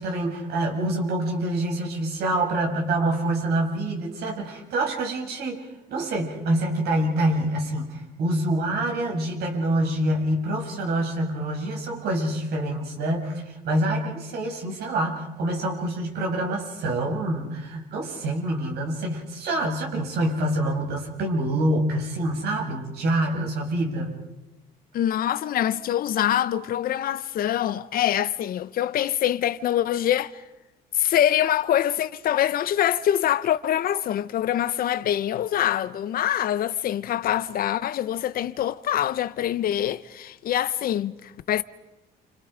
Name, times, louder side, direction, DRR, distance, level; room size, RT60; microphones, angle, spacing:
voice 1, 0.0-24.1, right 1 dB, 70° right, 7.2 m, -26 dB
voice 2, 24.9-30.3 30.9-41.6, left 11 dB, 60° left, 1.0 m, -24 dB
29.5 x 28.5 x 5.2 m
cardioid pair, 110°, 17 cm